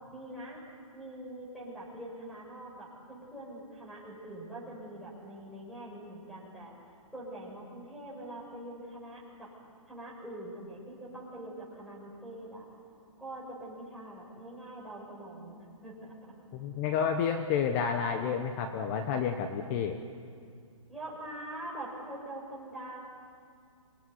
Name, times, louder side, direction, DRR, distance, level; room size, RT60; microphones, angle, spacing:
voice 1, 0.1-0.6 0.9-6.7 7.1-9.5 9.9-12.6 13.2-16.3 20.9-23.0, right 1 dB, ahead, -5 dB, 6.9 m, -44 dB
voice 2, 16.5-20.0, left 7 dB, 30° left, 6 dB, 1.3 m, -30 dB
27.0 x 19.0 x 9.7 m, 2.3 s
hypercardioid pair, 155°, 18 cm